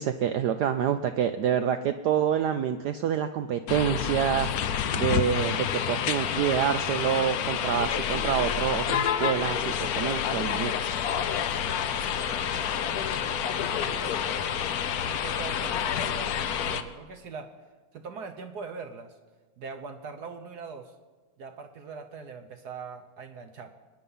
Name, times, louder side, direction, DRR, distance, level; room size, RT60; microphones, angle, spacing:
voice 1, 0.0-4.5 4.9-10.7, right 9 dB, 80° right, 9 dB, 0.9 m, -27 dB
sound 1, 3.7-16.8, left 8 dB, 65° left, 0.9 m, -28 dB
voice 2, 11.5-14.6 14.9-17.5 17.9-19.2 19.6-20.9 21.4-23.7, right 5 dB, 60° right, 5 dB, 1.2 m, -42 dB
23.0 x 9.8 x 5.5 m, 1.4 s
omnidirectional pair, 2.3 m